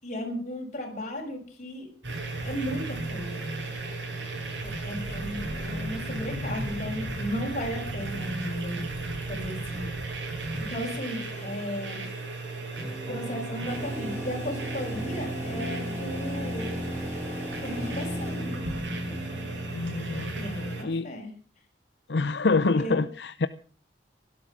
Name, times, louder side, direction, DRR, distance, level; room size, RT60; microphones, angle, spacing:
voice 1, 0.0-1.9 2.4-3.5 4.6-8.8 9.3-9.9 10.7-12.1 13.1-16.8 17.6-18.5 20.4-21.3 22.8-23.0, equal, 40° left, 6.5 m, -35 dB
sound 1, 2.0-20.8, right 2 dB, 90° right, 7.0 m, -35 dB
sound 2, 12.7-20.7, left 1 dB, 10° left, 7.7 m, -38 dB
sound 3, 13.6-18.8, equal, 15° right, 6.7 m, -38 dB
voice 2, 19.7-20.3 20.8-21.1 22.1-23.5, left 3 dB, 70° left, 0.6 m, -26 dB
17.5 x 12.5 x 6.1 m
head